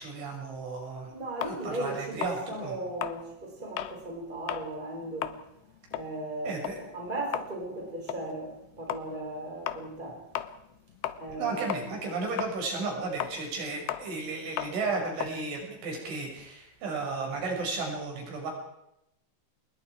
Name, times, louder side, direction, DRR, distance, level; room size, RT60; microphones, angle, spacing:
voice 1, 0.0-1.1 1.4-2.8 6.4-6.8 11.3-18.5, right 3 dB, 65° right, 1 dB, 8.1 m, -34 dB
voice 2, 1.1-5.3 5.9-10.2 11.2-12.0, right 1 dB, 10° right, 0 dB, 5.5 m, -37 dB
sound 1, 1.4-4.0 4.4-4.7 5.1-11.4 11.7-16.5, left 12 dB, 80° left, 2.2 m, -37 dB
27.0 x 21.0 x 4.8 m, 0.81 s
omnidirectional pair, 5.8 m